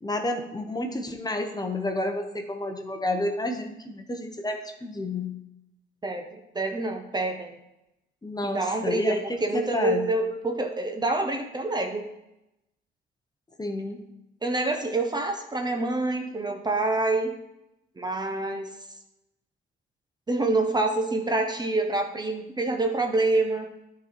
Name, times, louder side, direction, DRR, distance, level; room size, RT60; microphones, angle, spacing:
voice 1, 0.0-5.4 8.2-10.0 13.6-14.0, left 1 dB, 20° left, 4 dB, 1.0 m, -30 dB
voice 2, 6.0-7.5 8.5-12.1 14.4-17.3 18.0-18.7 20.3-23.7, right 2 dB, 20° right, 4 dB, 0.8 m, -27 dB
11.0 x 4.0 x 4.6 m, 0.89 s
cardioid pair, 90°, 20 cm